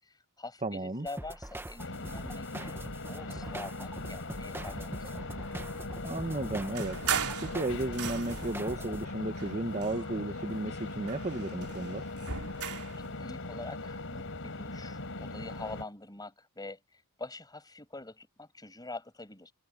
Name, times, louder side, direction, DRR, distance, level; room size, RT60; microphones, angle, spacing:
voice 1, 0.0-5.3 13.0-19.5, left 2 dB, 20° left, 6.4 m, -45 dB
voice 2, 0.6-1.1 6.0-12.0, right 2 dB, 30° right, 1.4 m, -34 dB
sound 1, 1.1-9.0, right 1 dB, 10° right, 1.2 m, -43 dB
sound 2, 1.8-15.8, left 2 dB, 65° left, 4.3 m, -40 dB
sound 3, 6.7-8.6 9.3-10.5 10.8-13.0, right 7 dB, 75° right, 4.6 m, -37 dB
head